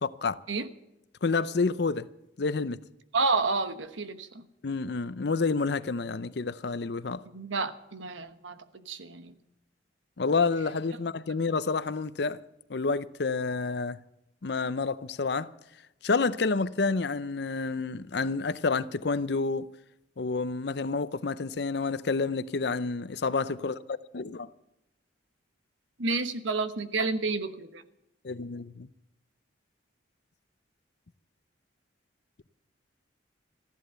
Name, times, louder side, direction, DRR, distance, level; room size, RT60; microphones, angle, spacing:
voice 1, 0.0-0.4 1.2-2.1 2.4-2.8 4.6-7.2 10.2-12.4 12.7-14.0 14.4-15.5 16.0-19.7 20.2-23.8 24.1-24.5 28.2-28.9, left 4 dB, 55° left, 0.6 m, -29 dB
voice 2, 3.1-4.4 7.3-9.3 26.0-27.8, right 3 dB, 75° right, 1.2 m, -30 dB
15.0 x 11.5 x 6.8 m
head